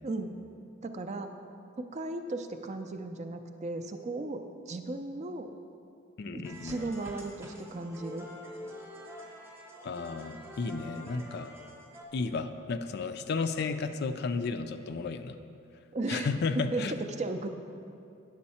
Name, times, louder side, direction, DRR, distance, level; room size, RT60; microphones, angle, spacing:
voice 1, 0.8-1.3 1.8-5.5 6.3-8.3 15.9-16.3 16.6-16.8 17.2-17.5, right 2 dB, 30° right, 7 dB, 0.4 m, -36 dB
voice 2, 6.2-6.9 9.8-11.5 12.1-15.4 16.1-17.0, left 4 dB, 50° left, 9 dB, 0.3 m, -33 dB
sound 1, 6.4-12.0, left 1 dB, 10° right, 0.9 m, -47 dB
9.6 x 6.3 x 4.2 m, 2.7 s
head